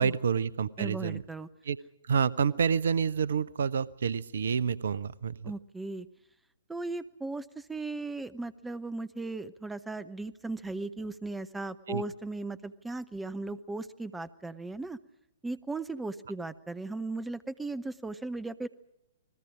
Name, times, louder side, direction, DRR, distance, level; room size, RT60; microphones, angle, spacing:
voice 1, 0.0-1.2 1.6-1.8 2.0-5.5 11.9-12.0, right 6 dB, 60° right, 21 dB, 0.7 m, -28 dB
voice 2, 0.8-1.5 5.4-6.1 6.7-15.0 15.4-18.7, right 2 dB, 5° right, 15 dB, 0.8 m, -37 dB
29.0 x 20.5 x 5.0 m, 0.87 s
figure-of-eight pair, 115°, 0 cm